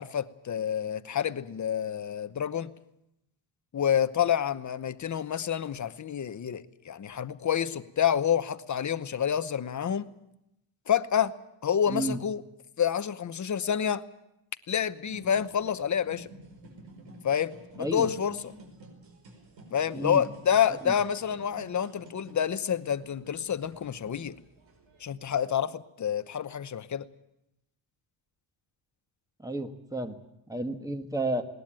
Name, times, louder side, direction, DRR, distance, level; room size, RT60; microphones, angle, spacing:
voice 1, 0.0-2.7 3.7-10.1 10.9-11.3 11.6-12.4 12.8-14.0 14.7-16.3 17.2-18.5 19.7-24.4 25.0-27.0, left 8 dB, 40° left, 13 dB, 0.9 m, -28 dB
voice 2, 11.9-12.2 17.8-18.1 19.9-20.2 20.8-20.9 29.4-30.2 30.5-31.4, right 1 dB, 5° right, 7 dB, 1.5 m, -31 dB
sound 1, 15.0-25.1, right 1 dB, 70° right, 5.2 m, -51 dB
20.0 x 19.0 x 8.9 m, 0.85 s
wide cardioid pair, 160°, 47 cm